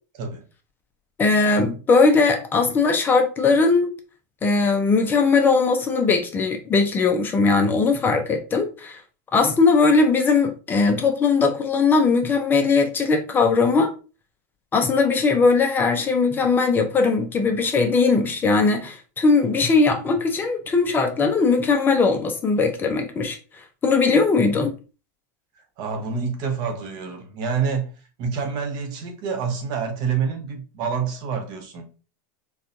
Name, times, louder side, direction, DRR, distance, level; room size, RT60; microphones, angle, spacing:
voice 1, 1.2-3.9 4.4-9.0 9.3-13.9 14.7-23.4 23.8-24.8, left 4 dB, 20° left, 0.5 m, -19 dB
voice 2, 25.8-27.9 28.2-31.8, right 6 dB, 45° right, 0.8 m, -27 dB
4.1 x 2.3 x 2.6 m
supercardioid pair, 140°, 10 cm